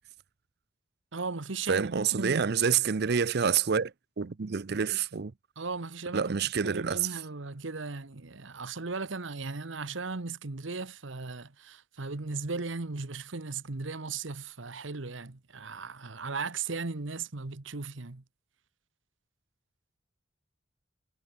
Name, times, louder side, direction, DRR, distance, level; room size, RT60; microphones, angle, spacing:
voice 1, 1.1-2.4 5.6-18.2, right 4 dB, 70° right, 1.2 m, -37 dB
voice 2, 1.7-5.3 6.1-7.0, right 6 dB, 55° right, 0.6 m, -28 dB
head